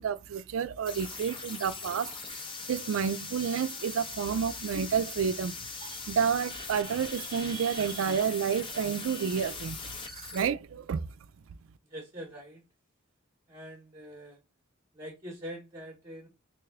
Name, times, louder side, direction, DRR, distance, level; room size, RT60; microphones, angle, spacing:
voice 1, 0.0-9.8 10.2-11.1, right 7 dB, 85° right, 0.4 m, -30 dB
sound 1, 0.9-10.5, left 4 dB, 25° left, 0.6 m, -41 dB
voice 2, 11.9-12.6 13.5-14.4 14.9-16.3, equal, 25° right, 0.9 m, -44 dB
3.2 x 2.5 x 3.5 m
head